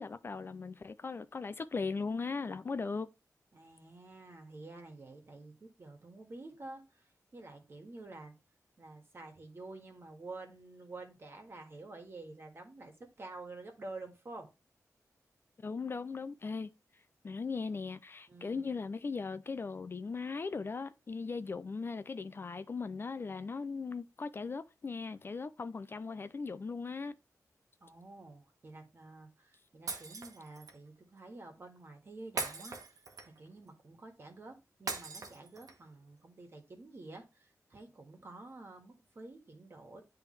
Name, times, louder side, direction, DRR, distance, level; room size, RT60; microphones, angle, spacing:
voice 1, 0.0-3.1 15.6-16.7 17.2-27.2, left 4 dB, 40° left, 0.4 m, -38 dB
voice 2, 3.5-7.0 7.3-8.3 8.8-14.5 18.3-18.7 27.8-40.0, right 2 dB, 40° right, 1.7 m, -49 dB
Shatter, 29.9-30.8 32.4-33.5 34.9-35.9, right 3 dB, 70° right, 1.1 m, -40 dB
10.5 x 3.5 x 3.2 m
wide cardioid pair, 160°, 6 cm